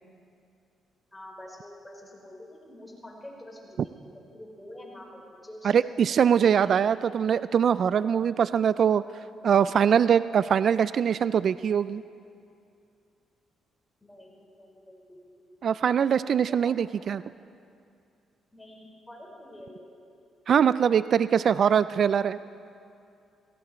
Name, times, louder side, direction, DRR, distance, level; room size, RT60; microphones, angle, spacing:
voice 1, 1.1-3.9 4.3-5.7 6.4-6.8 14.0-15.6 16.5-16.7 18.5-19.9, left 1 dB, 10° left, -2 dB, 4.8 m, -46 dB
voice 2, 5.6-9.0 9.4-12.0 15.6-17.2 20.5-22.4, right 8 dB, 55° right, 15 dB, 0.3 m, -22 dB
17.5 x 17.5 x 4.4 m, 2.5 s
cardioid pair, 90°, 0 cm